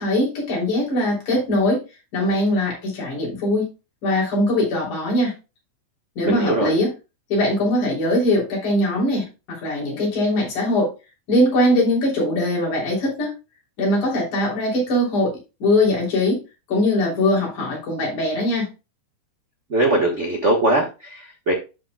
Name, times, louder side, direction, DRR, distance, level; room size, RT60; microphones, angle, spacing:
voice 1, 0.0-1.8 2.1-3.7 4.0-5.3 6.2-6.9 7.3-10.9 11.3-13.4 13.8-15.3 15.6-16.4 16.7-18.7, left 1 dB, 85° left, -3 dB, 4.8 m, -21 dB
voice 2, 6.2-6.7 19.7-21.5, right 1 dB, 45° right, 1 dB, 0.9 m, -21 dB
12.5 x 5.4 x 2.3 m, 0.28 s
omnidirectional pair, 3.4 m